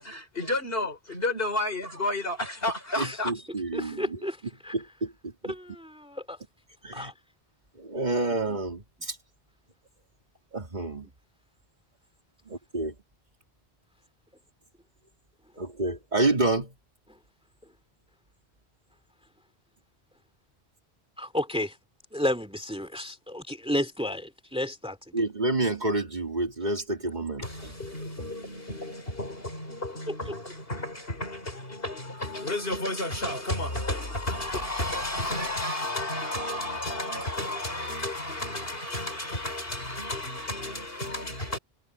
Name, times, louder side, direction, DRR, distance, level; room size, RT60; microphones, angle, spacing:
voice 1, 0.0-3.3 27.4-41.6, left 1 dB, 60° left, 5.8 m, -32 dB
voice 2, 3.0-4.2 4.7-5.5 6.8-7.1 7.8-9.2 10.5-11.1 12.5-12.9 15.6-16.7 25.1-27.7 28.0-28.1, right 2 dB, 45° right, 2.9 m, -29 dB
voice 3, 3.7-4.4 4.6-4.7 5.4-6.4 6.9-7.1 21.2-21.8 22.1-25.2 30.1-30.2, left 1 dB, 5° right, 2.4 m, -32 dB
omnidirectional pair, 1.1 m